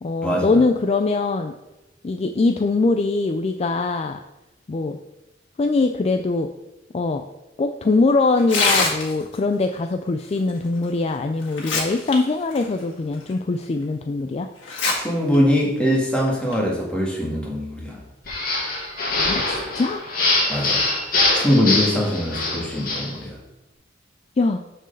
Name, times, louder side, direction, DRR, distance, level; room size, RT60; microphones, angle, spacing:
voice 1, 0.0-1.5 2.0-4.2 4.7-5.0 5.6-6.5 6.9-7.2 7.6-14.5 19.3-20.0 24.4-24.6, left 3 dB, 35° left, 6 dB, 0.3 m, -22 dB
Tearing, 8.4-9.4 10.8-10.9 11.4-12.1 12.5-12.6 13.3-13.4 14.6-14.9 15.3-15.4 16.3-16.5, left 3 dB, 70° left, 1.9 m, -22 dB
voice 2, 14.9-18.0 20.5-20.8 21.3-23.3, equal, 5° left, -3 dB, 1.8 m, -22 dB
sound 1, 18.3-23.1, left 2 dB, 50° left, 2.0 m, -23 dB
6.2 x 4.6 x 6.5 m, 0.95 s
head